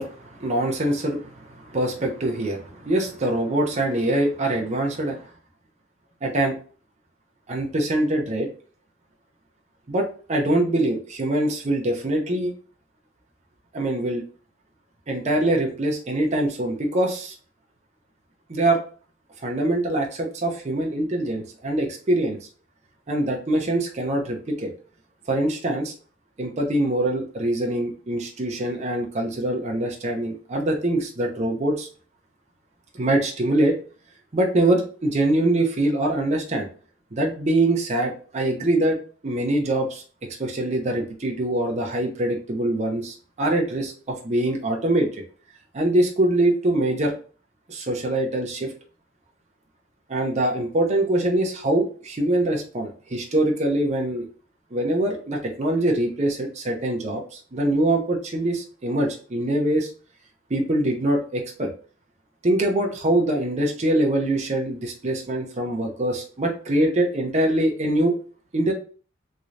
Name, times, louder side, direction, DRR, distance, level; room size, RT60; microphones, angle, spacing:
voice 1, 0.0-5.3 6.2-6.6 7.5-8.5 9.9-12.5 13.7-14.2 15.1-17.3 18.5-18.8 19.4-22.4 23.1-24.7 25.3-25.9 26.4-31.9 32.9-33.7 34.3-36.7 37.1-39.0 39.2-40.0 40.4-45.1 45.7-47.1 47.7-48.7 50.1-54.3 54.7-59.9 60.5-61.7 62.4-68.2 68.5-68.7, right 1 dB, 35° right, 1 dB, 0.6 m, -23 dB
3.6 x 3.2 x 2.5 m, 0.40 s
head